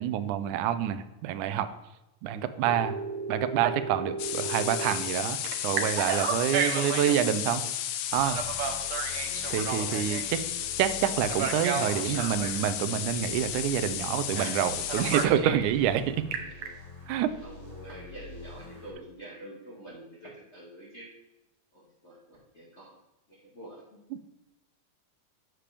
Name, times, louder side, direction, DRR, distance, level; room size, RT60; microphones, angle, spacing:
voice 1, 0.0-1.7 2.2-2.9 3.3-5.4 5.6-7.6 8.1-8.4 9.5-10.4 10.8-16.2 17.1-17.3, right 10 dB, 85° right, 11 dB, 2.0 m, -27 dB
Telephone, 2.6-4.9 5.4-7.2 8.2-10.4 11.3-12.6 14.3-14.6 14.9-15.7 16.1-16.7, right 6 dB, 70° right, 1.9 m, -33 dB
sound 1, 4.2-15.3, left 11 dB, 85° left, 1.4 m, -33 dB
sound 2, 8.1-18.9, left 3 dB, 15° left, 2.3 m, -46 dB
voice 2, 9.2-10.3 17.4-21.1 21.7-22.9 23.3-24.0, right 1 dB, 35° left, -6 dB, 1.1 m, -47 dB
8.4 x 7.5 x 3.3 m, 0.97 s
omnidirectional pair, 3.5 m